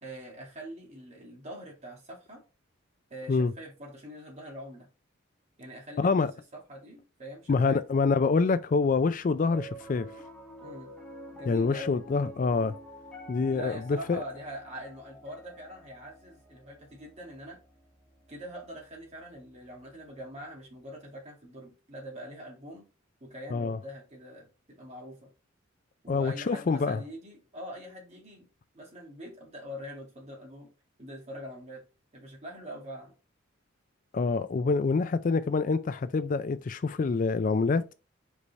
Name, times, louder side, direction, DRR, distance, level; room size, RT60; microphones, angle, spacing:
voice 1, 0.0-2.4 3.1-4.9 5.6-7.8 10.6-10.9 11.3-12.0 13.5-17.6 18.3-22.8 23.2-25.3 26.0-28.5 28.7-30.7 31.0-31.8 32.1-33.1, equal, 35° right, 2.5 m, -43 dB
voice 2, 6.0-6.3 7.5-10.1 11.5-12.8 13.3-14.2 23.5-23.8 26.1-27.0 34.1-37.8, left 4 dB, 40° left, 0.3 m, -26 dB
Piano, 9.4-19.8, right 1 dB, 5° left, 1.8 m, -49 dB
5.3 x 4.8 x 4.1 m
head